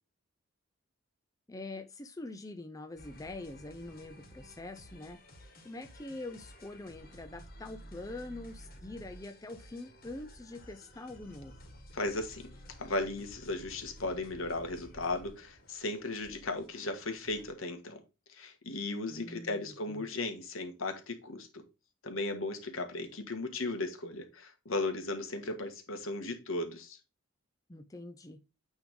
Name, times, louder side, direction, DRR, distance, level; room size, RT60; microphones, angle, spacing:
voice 1, 1.5-5.2 5.6-11.5 19.1-20.1 27.7-28.4, left 2 dB, 15° left, 0.5 m, -44 dB
sound 1, 3.0-17.5, equal, 45° left, 2.0 m, -53 dB
voice 2, 11.9-12.5 12.8-18.0 18.3-21.5 22.0-27.0, left 2 dB, 75° left, 1.6 m, -36 dB
9.2 x 3.6 x 3.6 m
head